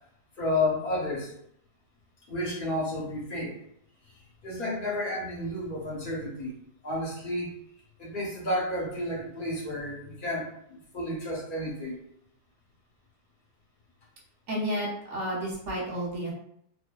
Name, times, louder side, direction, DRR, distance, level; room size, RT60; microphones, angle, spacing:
voice 1, 0.4-1.3 2.3-3.6 4.4-6.6 6.8-7.5 8.0-12.0, left 1 dB, 40° left, -5 dB, 0.8 m, -31 dB
voice 2, 14.5-16.3, equal, 55° right, -4 dB, 1.0 m, -31 dB
2.7 x 2.2 x 2.2 m, 0.71 s
omnidirectional pair, 1.7 m